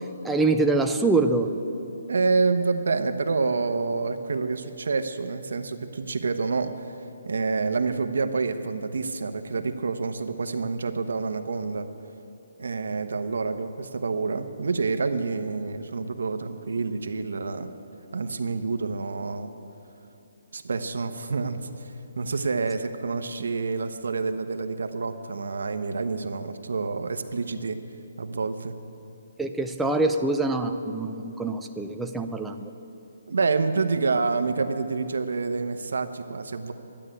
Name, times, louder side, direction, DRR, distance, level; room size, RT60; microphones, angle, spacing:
voice 1, 0.2-1.5 29.4-32.7, right 3 dB, 5° right, 4 dB, 0.4 m, -25 dB
voice 2, 2.1-6.9 7.3-11.9 12.6-17.7 18.1-19.5 20.5-27.8 28.2-28.7 33.3-36.7, right 4 dB, 75° right, 8 dB, 1.0 m, -28 dB
12.0 x 9.8 x 9.1 m, 3.0 s
hypercardioid pair, 180°, 0 cm